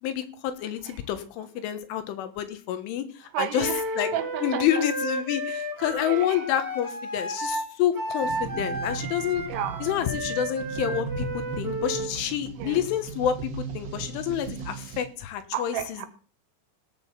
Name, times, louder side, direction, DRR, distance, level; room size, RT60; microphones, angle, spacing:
voice 1, 0.0-3.7 4.0-4.1 4.4-9.5 9.8-16.1, left 10 dB, 80° left, 10 dB, 3.6 m, -28 dB
voice 2, 3.3-4.7 5.9-6.5 9.5-9.8 12.6-12.8 15.5-16.1, right 10 dB, 85° right, 10 dB, 3.9 m, -32 dB
Wind instrument woodwind instrument, 3.6-12.1, right 1 dB, 10° right, 0.9 m, -32 dB
sound 1, 8.2-15.0, right 5 dB, 70° right, 1.5 m, -37 dB
17.5 x 6.3 x 7.2 m, 0.39 s
omnidirectional pair, 5.7 m